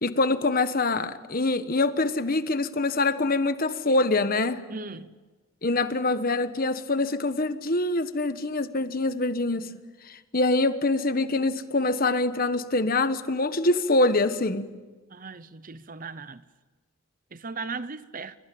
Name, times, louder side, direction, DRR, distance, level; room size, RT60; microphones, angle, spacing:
voice 1, 0.0-4.6 5.6-9.7 10.1-14.7, left 2 dB, 40° left, 1.3 m, -25 dB
voice 2, 4.7-5.1 15.1-16.4 17.3-18.4, right 4 dB, 40° right, 0.8 m, -37 dB
29.0 x 24.0 x 8.6 m
head